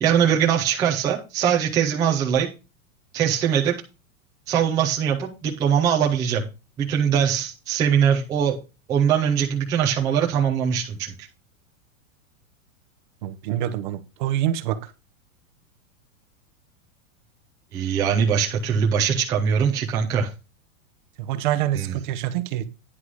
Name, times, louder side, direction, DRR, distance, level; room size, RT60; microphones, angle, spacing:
voice 1, 0.0-2.5 3.1-3.8 4.5-6.5 6.8-8.6 8.9-11.1 17.7-20.3 21.7-21.9, right 8 dB, 10° right, 0.5 m, -21 dB
voice 2, 13.2-14.9 21.2-22.7, right 12 dB, 35° right, 0.8 m, -26 dB
9.9 x 5.5 x 4.8 m
supercardioid pair, 175°, 41 cm